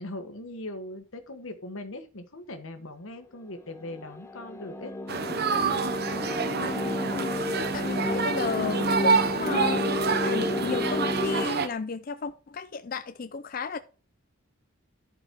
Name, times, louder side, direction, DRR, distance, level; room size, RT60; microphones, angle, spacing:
voice 1, 0.0-5.7, left 1 dB, 70° left, 1.4 m, -40 dB
sound 1, 3.7-11.5, left 2 dB, 10° left, 0.8 m, -31 dB
sound 2, 5.1-11.7, right 5 dB, 45° right, 0.9 m, -28 dB
voice 2, 7.7-13.8, left 5 dB, 40° left, 0.4 m, -34 dB
11.0 x 5.3 x 4.6 m
head